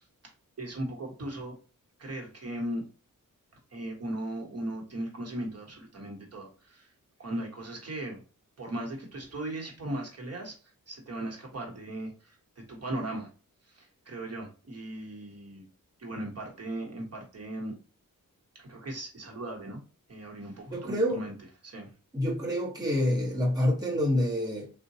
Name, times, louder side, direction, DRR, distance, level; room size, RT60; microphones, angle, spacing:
voice 1, 0.6-1.6 2.0-2.8 3.7-6.8 7.2-8.2 8.6-10.6 10.9-12.1 12.6-13.3 14.1-15.6 16.0-17.7 18.5-19.8 20.1-21.3 21.6-21.9, right 1 dB, 50° right, 0.9 m, -37 dB
voice 2, 20.7-21.3 22.1-24.7, left 1 dB, 10° right, 0.9 m, -27 dB
3.8 x 2.1 x 2.7 m
wide cardioid pair, 145°, 33 cm